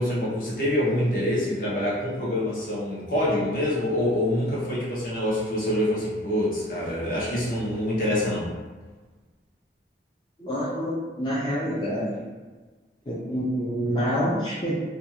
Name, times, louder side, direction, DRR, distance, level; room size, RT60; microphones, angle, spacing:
voice 1, 0.0-8.5, left 1 dB, 50° left, -6 dB, 0.8 m, -26 dB
voice 2, 10.4-12.2 13.1-14.7, equal, 25° left, -8 dB, 0.4 m, -27 dB
2.5 x 2.3 x 2.9 m, 1.3 s
head